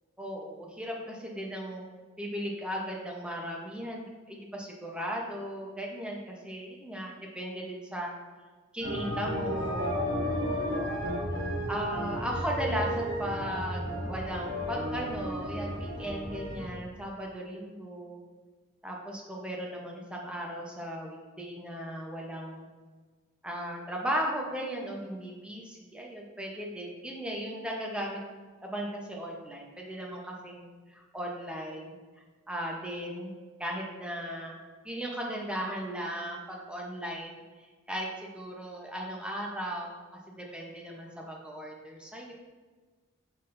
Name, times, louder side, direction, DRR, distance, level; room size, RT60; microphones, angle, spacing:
voice 1, 0.2-1.9 2.2-8.1 8.7-9.9 10.4-10.9 11.7-18.2 18.8-22.7 23.4-28.2 28.6-31.9 32.5-33.3 33.6-34.5 34.8-37.4 37.9-40.0 40.3-42.3, equal, 5° right, -2 dB, 0.8 m, -36 dB
sound 1, 8.8-16.7, equal, 55° right, 1.2 m, -33 dB
6.3 x 5.7 x 2.6 m, 1.4 s
head